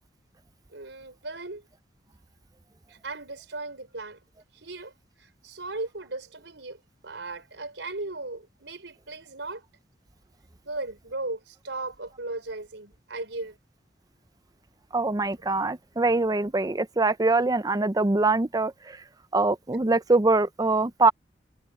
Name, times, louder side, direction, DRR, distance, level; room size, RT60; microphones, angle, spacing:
voice 1, 0.7-1.7 2.9-4.2 4.5-9.6 10.6-13.6, right 2 dB, 80° right, 4.6 m, -37 dB
voice 2, 14.9-19.0 19.3-21.1, right 3 dB, 20° right, 0.5 m, -23 dB
head